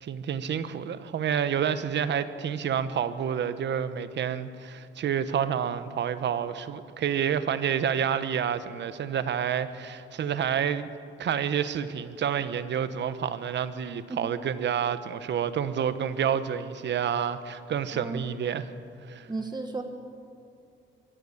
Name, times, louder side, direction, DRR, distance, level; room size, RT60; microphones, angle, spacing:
voice 1, 0.0-10.9 11.2-18.7 19.1-19.3, right 8 dB, 65° right, 12 dB, 1.3 m, -29 dB
voice 2, 17.9-18.3 19.3-19.8, right 3 dB, 20° right, 5 dB, 1.9 m, -34 dB
23.5 x 14.0 x 8.7 m, 2.4 s
cardioid pair, 90°, 20 cm